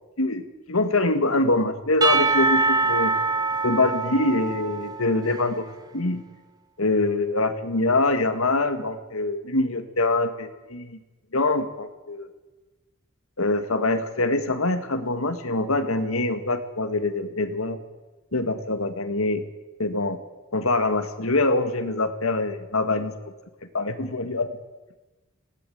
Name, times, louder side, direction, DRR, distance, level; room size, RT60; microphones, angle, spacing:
voice 1, 0.2-3.1 3.6-5.7 5.9-6.2 6.8-11.0 11.3-12.3 13.4-17.8 18.3-19.4 19.8-20.2 20.5-23.1 23.7-24.5, left 2 dB, 90° left, 10 dB, 1.9 m, -24 dB
Percussion / Church bell, 2.0-5.7, right 3 dB, 20° right, 1.2 m, -24 dB
19.5 x 17.5 x 9.4 m, 1.2 s
head